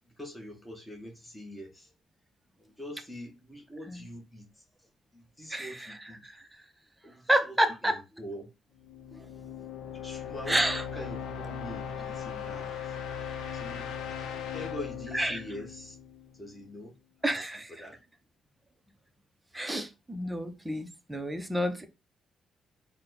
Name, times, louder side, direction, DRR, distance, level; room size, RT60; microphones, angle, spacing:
voice 1, 0.2-1.9 2.6-4.4 5.1-6.2 7.0-7.5 7.8-8.5 10.0-10.6 10.9-12.9 13.5-14.0 14.5-15.9 16.4-17.0 17.3-17.4 17.7-18.0, left 1 dB, 10° left, 1.1 m, -43 dB
voice 2, 5.5-6.4 7.3-8.0 10.5-10.8 15.1-15.4 17.2-17.7 19.5-21.9, right 1 dB, 10° right, 0.7 m, -29 dB
sound 1, 8.8-16.6, left 7 dB, 80° left, 0.6 m, -38 dB
4.1 x 2.2 x 4.0 m
cardioid pair, 90°, 0 cm